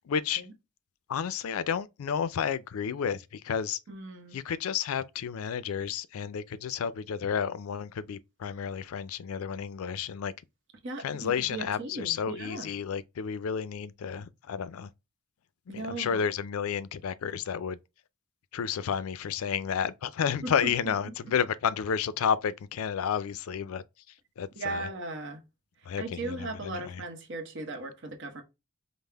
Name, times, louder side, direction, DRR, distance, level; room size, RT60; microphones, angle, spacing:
voice 1, 0.1-0.4 1.1-3.8 4.3-10.3 11.0-14.9 15.7-17.8 18.5-23.8 24.4-24.9 25.9-27.0, left 7 dB, 85° left, 0.4 m, -31 dB
voice 2, 3.9-4.4 10.8-12.7 15.7-16.2 20.4-20.7 24.6-25.4 26.0-28.4, right 2 dB, 55° right, 0.9 m, -37 dB
5.3 x 2.0 x 3.3 m
head